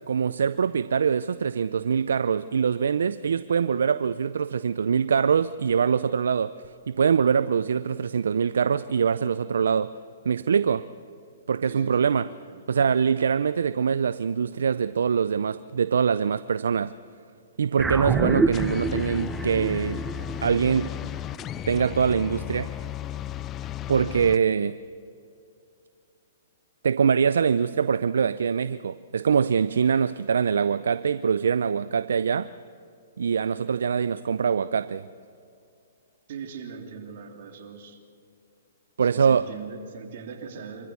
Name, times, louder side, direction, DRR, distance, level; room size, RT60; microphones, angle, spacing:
voice 1, 0.1-6.5 6.9-9.9 10.3-10.9 11.5-12.3 12.7-16.9 17.6-20.0 20.4-20.9 21.7-22.7 23.9-24.8 26.8-32.5 33.2-35.1 39.0-39.4, right 6 dB, 75° right, 15 dB, 0.5 m, -23 dB
voice 2, 11.6-12.9 36.3-38.0 39.0-40.9, right 6 dB, 55° right, 2 dB, 3.4 m, -40 dB
sound 1, 17.8-22.4, right 3 dB, 5° right, 0.8 m, -29 dB
sound 2, 18.5-24.4, left 12 dB, 25° left, 0.5 m, -35 dB
25.5 x 15.0 x 8.3 m, 2.5 s
hypercardioid pair, 130°, 0 cm